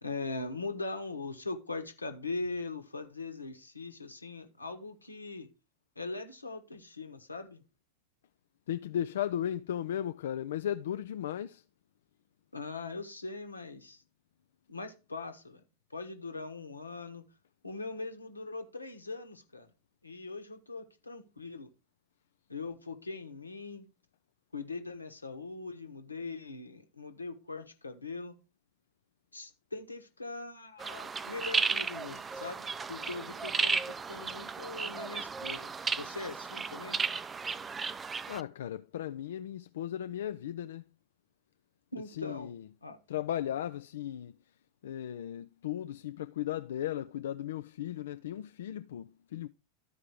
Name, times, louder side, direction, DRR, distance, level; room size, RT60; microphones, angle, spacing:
voice 1, 0.0-5.5 5.9-7.6 12.5-14.0 14.7-15.6 15.9-17.2 17.6-19.7 20.0-21.7 22.5-23.9 24.5-28.3 29.3-37.0 41.9-42.5 42.8-43.0, left 3 dB, 80° left, 1.3 m, -41 dB
voice 2, 8.7-11.6 38.3-40.8 42.1-42.7 43.1-44.3 44.8-49.5, left 11 dB, 60° left, 0.4 m, -36 dB
sound 1, 30.8-38.4, right 5 dB, 15° right, 0.4 m, -34 dB
13.0 x 4.8 x 4.6 m
figure-of-eight pair, 90°, 0 cm